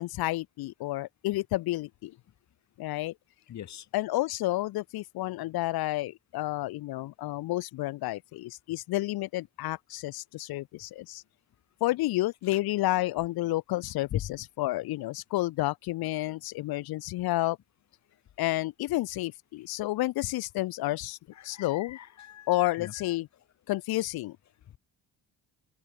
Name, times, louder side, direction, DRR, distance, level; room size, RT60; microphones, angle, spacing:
voice 1, 0.0-2.1 2.8-3.1 3.9-11.2 11.8-14.1 14.6-17.6 18.4-21.2 21.4-22.0 22.5-23.3 23.7-24.4, left 17 dB, 70° left, 1.4 m, -30 dB
voice 2, 3.5-3.9 12.5-12.6 14.1-14.3 21.3-23.2 24.7-24.8, left 11 dB, 45° left, 7.2 m, -39 dB
open air
cardioid pair, 175°, 37 cm